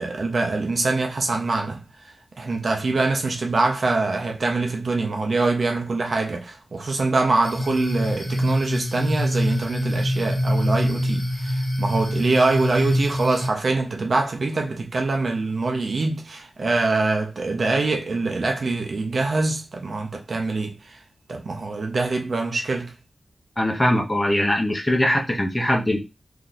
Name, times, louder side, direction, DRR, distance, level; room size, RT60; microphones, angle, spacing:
voice 1, 0.0-21.0 21.3-23.0, right 3 dB, 65° right, 0.7 m, -24 dB
sound 1, 7.4-13.5, equal, 50° left, 1.1 m, -25 dB
voice 2, 23.6-26.0, left 1 dB, 20° left, 0.9 m, -21 dB
3.6 x 2.9 x 2.5 m
wide cardioid pair, 105°, 0 cm